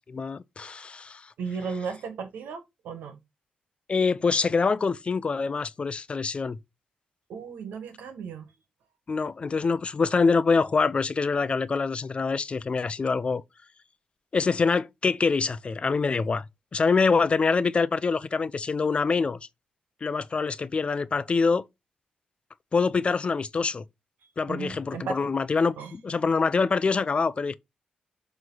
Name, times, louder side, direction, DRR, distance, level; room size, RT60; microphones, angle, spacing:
voice 1, 0.1-1.3 3.9-6.6 9.1-13.4 14.3-16.5 16.7-19.4 20.0-21.6 22.7-23.8 24.4-27.6, left 4 dB, 40° left, 0.6 m, -25 dB
voice 2, 1.4-3.2 7.3-8.5 24.5-25.3 25.8-25.9, right 5 dB, 85° right, 1.5 m, -35 dB
7.3 x 3.2 x 3.9 m
cardioid pair, 60°, 3 cm